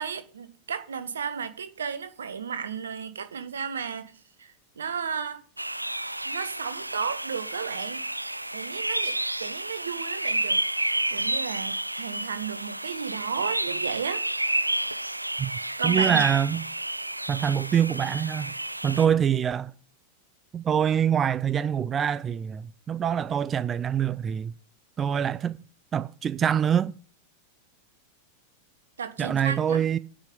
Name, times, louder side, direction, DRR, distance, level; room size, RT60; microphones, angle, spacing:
voice 1, 0.0-4.1 4.4-5.4 6.2-8.0 8.5-14.2 15.8-16.3 29.0-29.8, right 7 dB, 70° right, 1.3 m, -33 dB
sound 1, 5.6-19.1, right 1 dB, 85° right, 0.4 m, -30 dB
voice 2, 15.8-16.6 17.3-18.5 18.8-19.7 20.5-24.5 25.0-25.6 25.9-26.9 29.2-30.0, right 8 dB, 25° right, 0.4 m, -25 dB
9.7 x 5.6 x 8.2 m
figure-of-eight pair, 90°, 0 cm